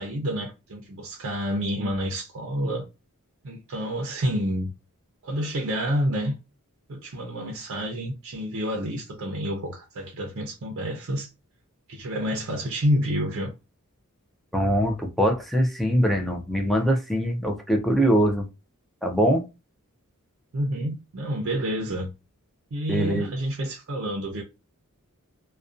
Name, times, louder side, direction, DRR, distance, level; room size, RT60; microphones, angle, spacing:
voice 1, 0.0-2.9 3.4-4.7 5.2-6.3 6.9-11.3 11.9-13.5 20.5-22.1 22.7-24.4, equal, 60° right, 0.5 m, -28 dB
voice 2, 14.5-18.5 19.0-19.4 22.9-23.3, equal, ahead, 0.4 m, -22 dB
2.5 x 2.2 x 2.4 m
head